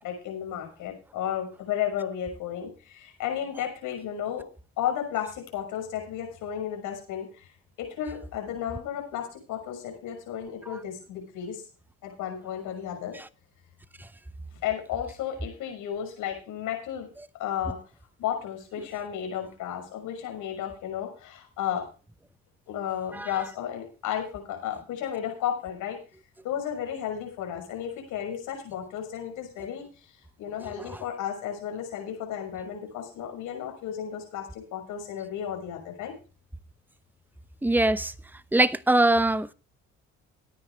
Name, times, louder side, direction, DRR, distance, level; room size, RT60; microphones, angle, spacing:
voice 1, 0.0-4.4 4.8-7.5 7.8-11.6 12.0-13.2 14.6-17.1 17.3-17.8 18.2-21.8 22.7-26.0 26.4-29.8 30.4-36.1, left 9 dB, 85° left, 6.2 m, -33 dB
voice 2, 37.6-38.1 38.5-39.5, right 1 dB, 5° right, 0.8 m, -21 dB
17.5 x 10.0 x 3.4 m
supercardioid pair, 70°, 31 cm